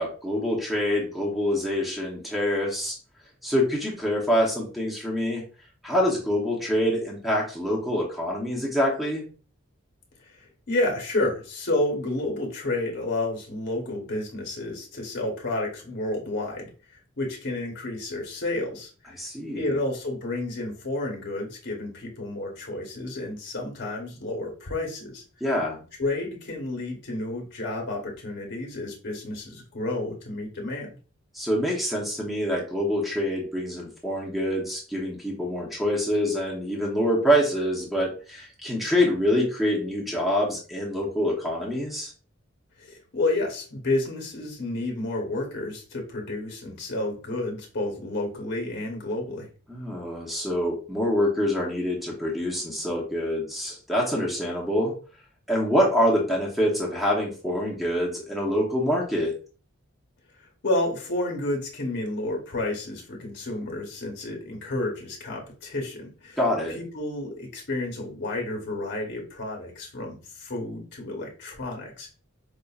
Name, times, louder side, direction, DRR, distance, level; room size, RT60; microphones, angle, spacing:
voice 1, 0.0-2.9 3.4-5.4 5.8-9.2 19.1-19.8 25.4-25.8 31.3-42.1 49.7-54.9 55.5-59.3 66.4-66.8, equal, ahead, -3 dB, 0.8 m, -25 dB
voice 2, 10.7-16.7 17.2-18.9 19.5-25.2 26.0-30.9 42.8-49.5 60.6-66.4 66.7-72.2, left 2 dB, 55° left, 1 dB, 1.0 m, -30 dB
5.1 x 2.4 x 2.3 m, 0.38 s
head